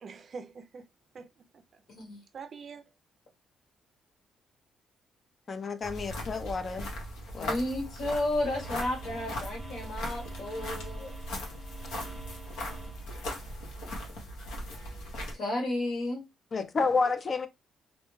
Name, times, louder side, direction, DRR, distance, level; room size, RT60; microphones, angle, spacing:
voice 1, 0.0-0.9 1.1-1.8 2.3-2.9, right 5 dB, 50° right, 0.4 m, -45 dB
voice 2, 1.9-2.2 7.4-11.1 15.3-16.2, left 1 dB, 70° left, 1.3 m, -32 dB
voice 3, 5.5-6.9 7.3-7.6 16.5-17.5, left 4 dB, 40° left, 0.4 m, -30 dB
sound 1, 5.8-15.3, left 1 dB, 90° left, 0.8 m, -39 dB
sound 2, 8.4-13.5, right 3 dB, 10° right, 0.9 m, -47 dB
2.5 x 2.1 x 3.0 m
cardioid pair, 90°, 0 cm